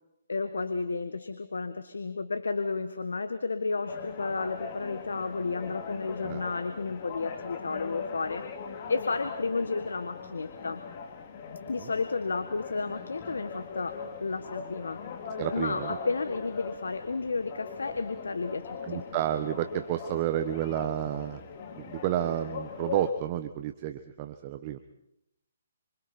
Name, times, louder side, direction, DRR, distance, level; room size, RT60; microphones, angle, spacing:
voice 1, 0.3-10.8 11.7-15.0 15.5-19.0, left 4 dB, 80° left, 10 dB, 1.6 m, -32 dB
sound 1, 3.9-23.1, left 5 dB, 40° left, 2.9 m, -40 dB
voice 2, 15.4-16.0 18.9-21.4 21.8-24.8, right 11 dB, 35° right, 9 dB, 1.4 m, -31 dB
28.0 x 26.5 x 4.5 m, 0.80 s
hypercardioid pair, 140°, 0 cm